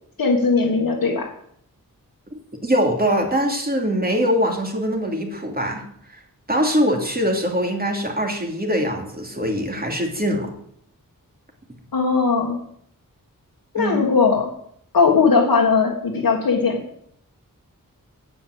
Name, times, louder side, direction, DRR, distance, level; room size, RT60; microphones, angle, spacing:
voice 1, 0.2-1.3 11.9-12.6 13.7-14.5 14.9-17.0, left 4 dB, 90° left, -2 dB, 1.8 m, -19 dB
voice 2, 2.3-5.8 6.5-10.5 13.8-14.0, equal, 25° right, 1 dB, 2.8 m, -22 dB
9.7 x 8.1 x 7.9 m, 0.69 s
wide cardioid pair, 85°, 34 cm